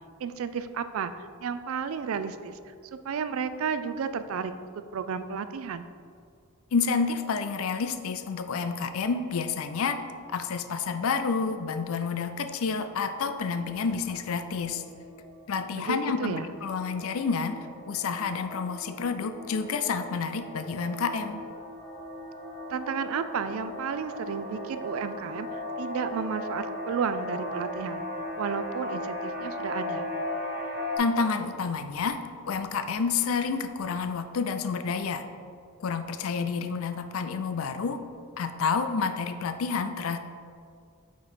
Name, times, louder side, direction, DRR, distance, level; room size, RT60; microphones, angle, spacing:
voice 1, 0.2-2.6 2.9-4.5 4.9-5.9 15.8-16.5 22.7-25.5 25.8-28.0 28.4-30.1, right 6 dB, 65° right, 11 dB, 0.3 m, -32 dB
voice 2, 6.7-10.0 10.3-14.8 15.5-17.6 17.9-21.4 31.0-32.2 32.5-35.3 35.8-38.0 38.4-40.2, left 5 dB, 65° left, 9 dB, 0.4 m, -29 dB
sound 1, 13.2-31.0, left 1 dB, 40° right, 1.3 m, -38 dB
8.8 x 3.1 x 4.1 m, 2.2 s
head